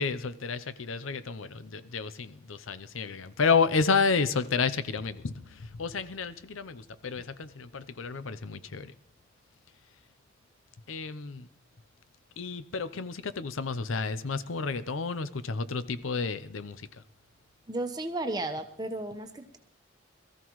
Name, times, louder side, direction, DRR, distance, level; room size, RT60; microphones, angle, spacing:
voice 1, 0.0-8.9 10.9-11.5 12.4-16.8, left 5 dB, 85° left, 14 dB, 0.7 m, -30 dB
voice 2, 17.7-19.6, right 2 dB, 20° right, 6 dB, 1.1 m, -34 dB
22.5 x 14.0 x 3.1 m, 0.67 s
head